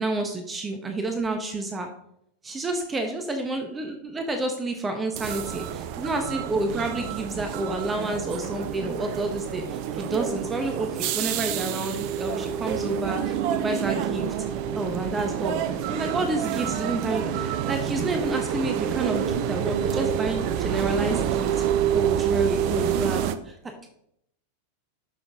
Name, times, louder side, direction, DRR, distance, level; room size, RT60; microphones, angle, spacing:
voice 1, 0.0-1.9 2.4-14.3 14.8-21.5 21.9-23.9, right 2 dB, 15° right, 5 dB, 1.1 m, -29 dB
sound 1, 5.2-23.4, right 9 dB, 45° right, 0.7 m, -28 dB
11.5 x 6.3 x 3.7 m, 0.74 s
figure-of-eight pair, 90°, 0 cm